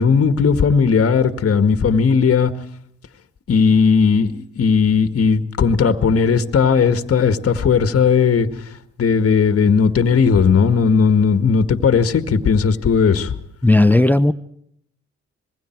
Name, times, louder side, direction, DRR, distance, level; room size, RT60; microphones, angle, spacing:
voice 1, 0.0-2.5 3.5-8.5 9.0-13.3, left 5 dB, 50° left, 1.9 m, -16 dB
voice 2, 13.6-14.3, left 2 dB, 5° left, 0.7 m, -13 dB
27.0 x 21.5 x 4.7 m
cardioid pair, 90°, 30 cm